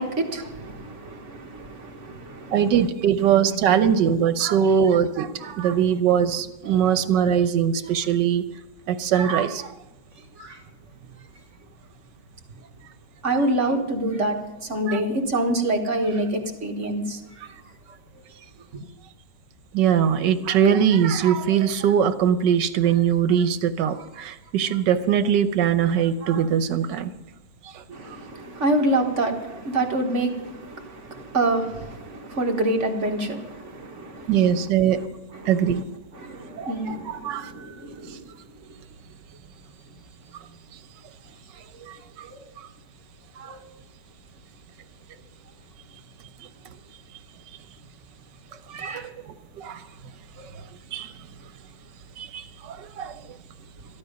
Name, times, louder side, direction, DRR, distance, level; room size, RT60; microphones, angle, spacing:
voice 1, 0.0-2.7 5.4-5.7 6.6-7.0 10.2-10.6 11.0-11.1 13.2-17.5 18.1-18.2 27.9-34.6 34.9-35.1 35.3-35.5 36.1-38.4 41.7-41.9 42.2-42.4 43.4-43.6 48.5-49.1 50.4-50.5, right 1 dB, 45° right, 1.7 m, -27 dB
voice 2, 2.5-8.4 8.9-9.8 14.9-15.0 19.7-27.1 27.6-27.8 34.3-35.0 35.5-35.8 36.6-37.8 38.1-38.2 40.3-40.4 41.5-42.3 42.6-42.7 43.4-43.6 46.4-46.5 48.8-49.9 50.9-51.3 52.2-53.2, right 8 dB, 85° right, 1.5 m, -22 dB
14.0 x 12.0 x 5.2 m
omnidirectional pair, 1.9 m